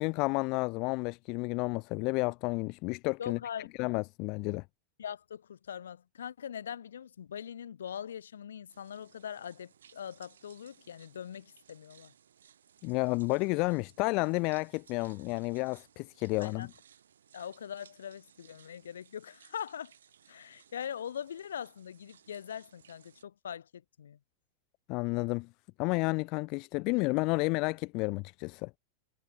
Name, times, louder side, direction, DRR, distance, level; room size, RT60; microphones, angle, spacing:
voice 1, 0.0-3.4 3.8-4.6 12.8-16.7 24.9-25.5 25.8-28.8, left 27 dB, 40° left, 0.3 m, -31 dB
voice 2, 3.2-3.7 5.0-12.1 16.4-16.7 17.3-19.9 20.3-24.2, left 8 dB, 65° left, 2.0 m, -42 dB
sound 1, 8.7-23.2, right 9 dB, 65° right, 7.7 m, -62 dB
figure-of-eight pair, 90°, 0 cm